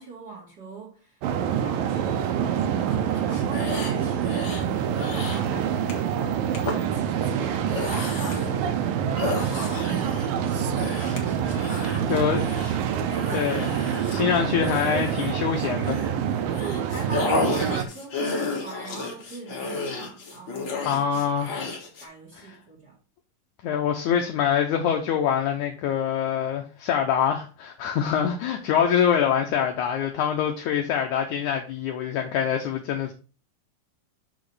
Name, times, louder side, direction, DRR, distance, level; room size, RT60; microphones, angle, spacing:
voice 1, 0.0-4.7 5.1-6.1 6.9-9.4 10.5-11.1 11.6-12.3 12.6-13.5 16.6-21.5 22.0-23.0, right 4 dB, 35° right, 2.3 m, -42 dB
sound 1, 1.2-17.8, right 8 dB, 85° right, 2.4 m, -26 dB
sound 2, 3.1-4.6 4.9-5.5 5.9-6.1 6.5-6.8 7.5-8.6 9.2-16.1 16.5-22.0, left 3 dB, 45° left, 1.7 m, -32 dB
voice 2, 12.1-12.4 13.3-13.7 14.2-16.0 20.9-21.5 22.4-22.6 23.6-33.1, left 8 dB, 70° left, 2.0 m, -25 dB
6.4 x 5.9 x 4.9 m
omnidirectional pair, 4.1 m